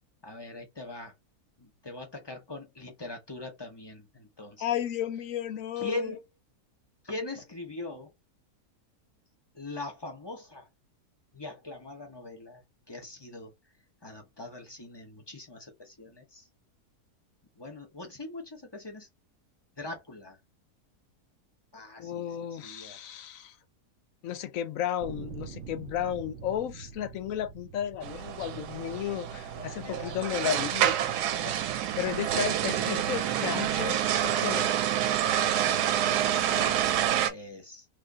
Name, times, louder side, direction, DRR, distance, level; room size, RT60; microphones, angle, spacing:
voice 1, 0.2-1.1 1.6-4.7 5.8-6.2 7.0-8.1 9.5-10.7 11.3-13.5 14.0-16.5 17.6-19.1 19.8-20.4 21.7-23.0 29.5-30.3 30.8-31.8 33.1-33.6 35.6-36.8 37.3-37.8, left 2 dB, 25° left, 0.6 m, -42 dB
voice 2, 4.6-6.1 22.0-23.5 24.2-30.9 32.0-34.7, left 10 dB, 65° left, 0.9 m, -33 dB
sound 1, 25.0-30.3 31.0-31.1, right 6 dB, 65° right, 0.7 m, -46 dB
sound 2, 28.0-37.3, right 10 dB, 85° right, 1.2 m, -28 dB
3.2 x 2.5 x 3.6 m
omnidirectional pair, 1.7 m